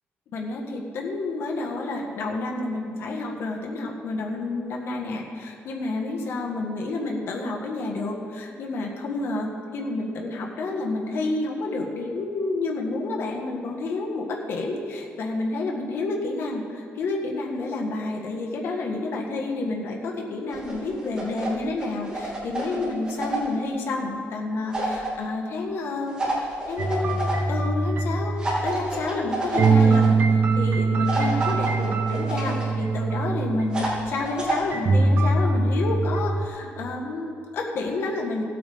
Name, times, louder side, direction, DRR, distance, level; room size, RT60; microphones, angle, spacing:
voice 1, 0.3-38.4, left 2 dB, 65° left, 0 dB, 1.7 m, -29 dB
sound 1, 20.5-21.5 21.8-23.6 24.7-25.1 26.2-27.3 28.4-30.1 31.1-32.6 33.7-34.6, right 2 dB, 20° right, 3.0 m, -29 dB
sound 2, 26.8-29.0 29.6-33.9 34.7-36.5, right 3 dB, 50° right, 1.0 m, -22 dB
17.0 x 8.5 x 3.7 m, 2.3 s
cardioid pair, 130°, 4 cm